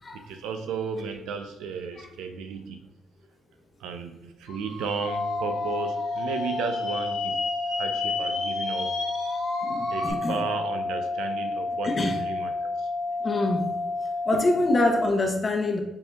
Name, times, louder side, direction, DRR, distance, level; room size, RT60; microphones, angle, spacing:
voice 1, 0.1-2.9 3.8-9.0 9.9-12.9, right 5 dB, 90° right, 7 dB, 0.4 m, -34 dB
sound 1, 4.5-10.1, left 3 dB, 85° left, 1.0 m, -34 dB
sound 2, 5.1-15.1, left 3 dB, ahead, 0.8 m, -30 dB
voice 2, 9.6-10.4 11.8-12.2 13.2-13.7 14.3-15.8, left 2 dB, 35° left, 3 dB, 0.7 m, -25 dB
6.7 x 2.7 x 2.3 m, 0.86 s
cardioid pair, 90°, 0 cm